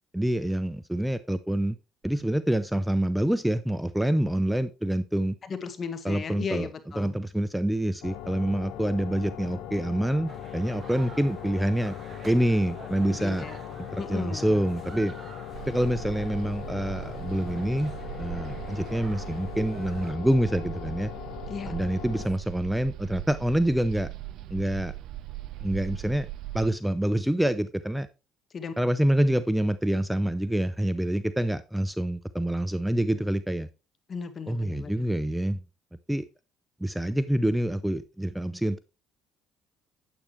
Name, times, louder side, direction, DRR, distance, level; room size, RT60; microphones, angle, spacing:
voice 1, 0.1-1.8 2.0-5.3 6.0-6.7 7.0-12.0 12.3-13.4 13.9-15.1 15.6-17.9 18.2-21.1 21.7-24.1 24.5-24.9 25.6-26.3 26.5-28.1 28.8-33.7 34.5-35.6 36.1-36.2 36.8-38.8, right 1 dB, 5° right, 0.6 m, -26 dB
voice 2, 5.4-7.2 13.1-13.6 14.0-14.6 21.5-21.8 28.5-28.7 34.1-35.0, left 5 dB, 45° left, 1.5 m, -36 dB
sound 1, 8.0-22.3, left 10 dB, 75° left, 0.9 m, -40 dB
sound 2, 10.3-20.1, right 4 dB, 35° right, 1.4 m, -48 dB
sound 3, 15.5-26.7, right 15 dB, 70° right, 0.4 m, -40 dB
8.9 x 8.1 x 3.2 m
supercardioid pair, 70°, 0 cm